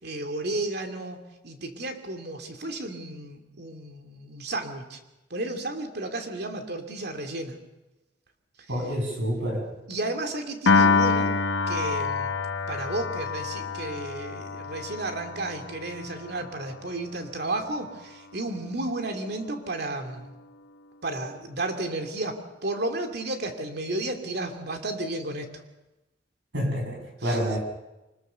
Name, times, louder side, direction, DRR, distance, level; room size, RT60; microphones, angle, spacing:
voice 1, 0.0-5.0 5.3-7.6 9.9-11.4 11.7-12.4 12.7-20.3 21.0-25.5 27.2-27.4, right 2 dB, 60° right, 5 dB, 2.7 m, -33 dB
voice 2, 8.7-9.6 26.5-27.6, equal, 80° right, 2 dB, 6.7 m, -28 dB
Piano, 10.7-17.0, left 4 dB, 80° left, 1.5 m, -26 dB
25.0 x 20.0 x 6.9 m, 1.0 s
head